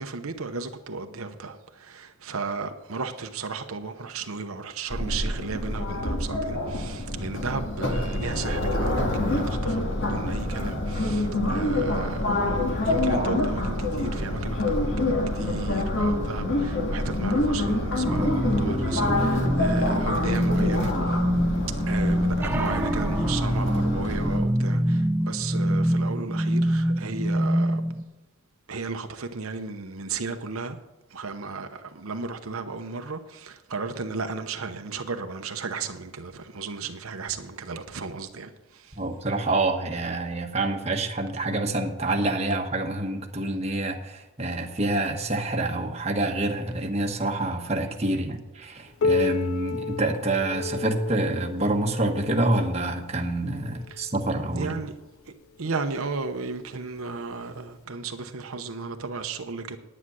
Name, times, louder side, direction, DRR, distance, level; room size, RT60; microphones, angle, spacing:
voice 1, 0.0-12.2 12.8-21.2 21.8-27.8 28.7-30.8 31.1-39.0 53.9-54.0 54.5-54.9 55.6-59.8, right 4 dB, 80° right, 0.9 m, -34 dB
sound 1, 4.9-24.4, left 1 dB, 55° left, 2.1 m, -27 dB
sound 2, 18.0-28.0, equal, 10° right, 0.7 m, -25 dB
voice 2, 38.9-54.7, right 2 dB, 30° right, 1.1 m, -27 dB
Piano, 49.0-54.3 55.2-55.3 55.8-55.9 56.7-56.8 57.8-57.9, left 4 dB, 75° left, 0.4 m, -31 dB
9.9 x 9.7 x 6.2 m
head